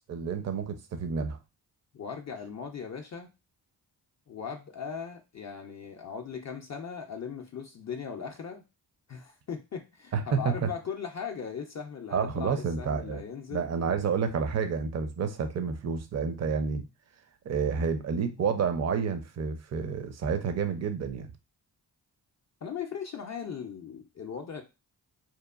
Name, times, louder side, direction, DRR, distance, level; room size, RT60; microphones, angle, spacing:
voice 1, 0.1-1.4 10.1-10.7 12.1-13.2 13.5-16.9 17.5-21.3, right 6 dB, 35° right, 0.5 m, -29 dB
voice 2, 1.9-3.3 4.3-8.7 9.1-13.7 22.6-24.6, left 6 dB, 40° left, 0.4 m, -38 dB
2.9 x 2.1 x 2.4 m
supercardioid pair, 40°, 45 cm